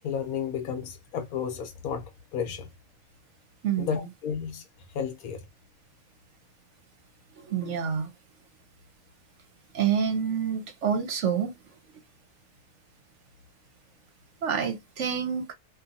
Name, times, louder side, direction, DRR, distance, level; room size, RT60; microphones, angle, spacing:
voice 1, 0.0-2.7 3.8-4.6 4.9-5.4, left 7 dB, 80° left, 1.1 m, -32 dB
voice 2, 3.6-4.0 7.4-8.1 9.7-11.5 14.4-15.5, right 7 dB, 60° right, 0.9 m, -27 dB
2.7 x 2.6 x 2.5 m
omnidirectional pair, 1.5 m